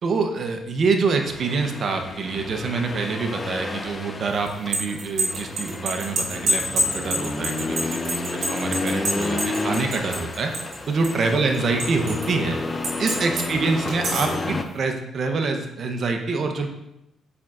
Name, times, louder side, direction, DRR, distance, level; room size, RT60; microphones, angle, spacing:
voice 1, 0.0-10.5 10.9-12.6 13.0-16.7, right 4 dB, 55° right, 4 dB, 0.8 m, -26 dB
Accelerating revving vroom, 1.2-14.7, left 2 dB, 25° left, 0.6 m, -31 dB
sound 1, 4.5-10.8 11.0-12.3 12.8-13.5 13.9-14.4, right 1 dB, 70° right, 1.7 m, -26 dB
7.0 x 5.3 x 2.5 m, 0.86 s
cardioid pair, 90°, 0 cm